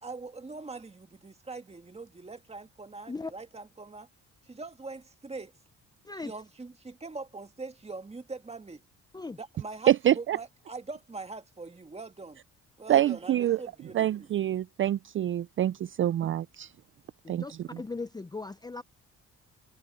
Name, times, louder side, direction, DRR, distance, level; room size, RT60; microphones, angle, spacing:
voice 1, 0.0-4.1 4.5-5.5 6.2-8.8 9.3-12.4 12.8-14.3, right 3 dB, 20° right, 2.0 m, -42 dB
voice 2, 9.9-10.4 12.9-13.6 13.9-16.7 17.3-17.8, right 12 dB, 45° right, 0.4 m, -26 dB
voice 3, 17.2-18.8, left 3 dB, 15° left, 0.6 m, -38 dB
cardioid pair, 90°, 30 cm